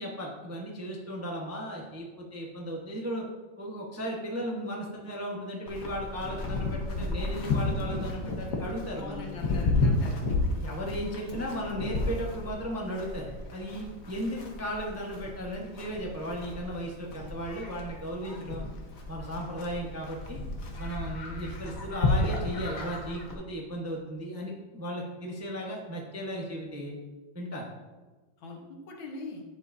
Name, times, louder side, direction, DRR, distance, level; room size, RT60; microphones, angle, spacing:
voice 1, 0.0-3.2 3.6-9.3 10.6-18.7 19.1-20.4 20.8-26.9 27.3-27.7, equal, 15° right, -2 dB, 0.7 m, -36 dB
Livestock farm animals working animals, 5.7-23.3, left 2 dB, 50° left, 1.4 m, -32 dB
voice 2, 9.0-10.3 28.4-29.4, left 3 dB, 80° left, 0 dB, 2.0 m, -42 dB
10.5 x 7.5 x 2.7 m, 1.3 s
omnidirectional pair, 2.1 m